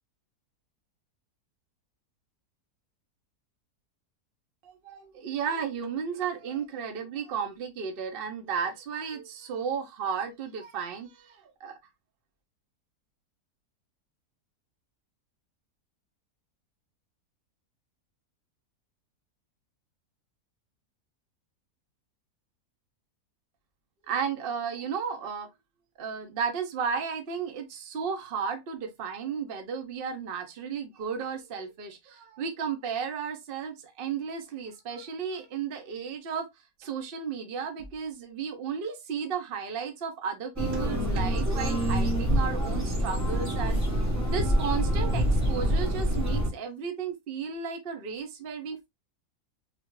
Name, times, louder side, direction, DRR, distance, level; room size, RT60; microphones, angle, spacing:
voice 1, 4.6-11.8 24.1-25.5 26.0-36.5 36.8-43.8 44.3-48.9, right 6 dB, 50° right, 0.7 m, -34 dB
sound 1, 40.6-46.5, equal, 15° right, 0.5 m, -26 dB
3.6 x 2.4 x 3.0 m
omnidirectional pair, 1.7 m